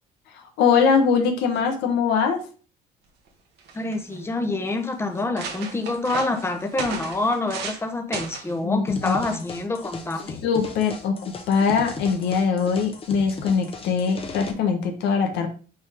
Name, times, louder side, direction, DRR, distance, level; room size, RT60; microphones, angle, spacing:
voice 1, 0.6-2.4 8.6-9.4 10.4-15.5, left 6 dB, 85° left, 4 dB, 1.3 m, -22 dB
sound 1, 3.3-3.4 3.6-4.2 4.8-4.9 5.1-7.8 8.1-8.5 9.3-9.6, right 5 dB, 80° right, 1.7 m, -35 dB
voice 2, 3.7-10.4, left 2 dB, 15° left, 4 dB, 1.1 m, -27 dB
sound 2, 8.9-14.5, left 4 dB, 35° left, 1.1 m, -37 dB
5.9 x 4.5 x 3.6 m, 0.36 s
cardioid pair, 110°, 17 cm